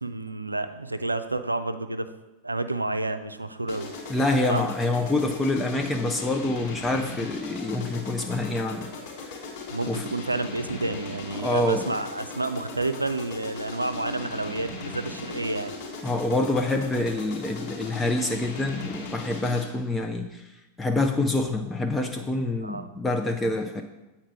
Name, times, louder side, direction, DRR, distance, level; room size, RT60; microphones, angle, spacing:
voice 1, 0.0-2.1 2.4-3.9 4.5-4.6 9.7-15.7 22.6-22.9, right 2 dB, 85° right, 10 dB, 0.5 m, -30 dB
sound 1, 3.7-19.9, left 3 dB, 45° left, 3.1 m, -38 dB
voice 2, 4.1-8.9 9.2-9.3 9.9-10.1 11.3-11.8 16.0-20.5 20.8-23.8, left 2 dB, 10° left, 4 dB, 0.6 m, -26 dB
8.6 x 4.3 x 6.0 m, 1.0 s
figure-of-eight pair, 90°, 0 cm